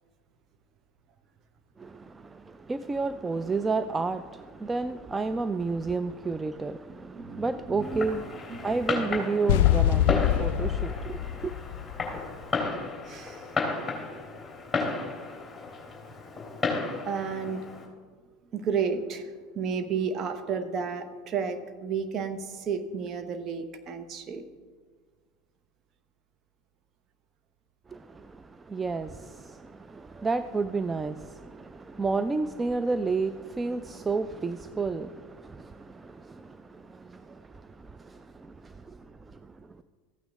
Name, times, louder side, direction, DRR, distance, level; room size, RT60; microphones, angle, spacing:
voice 1, 1.8-11.5 27.9-39.8, right 4 dB, 20° right, 0.4 m, -32 dB
voice 2, 6.9-8.0 8.5-8.8 13.0-13.5 17.0-17.7 18.5-24.4 37.2-37.4, right 6 dB, 40° right, 1.1 m, -32 dB
Fireworks, 7.8-17.9, left 4 dB, 10° left, 3.3 m, -33 dB
sound 1, 9.5-12.4, left 13 dB, 60° left, 0.3 m, -24 dB
14.5 x 9.0 x 3.6 m
figure-of-eight pair, 75°, 0 cm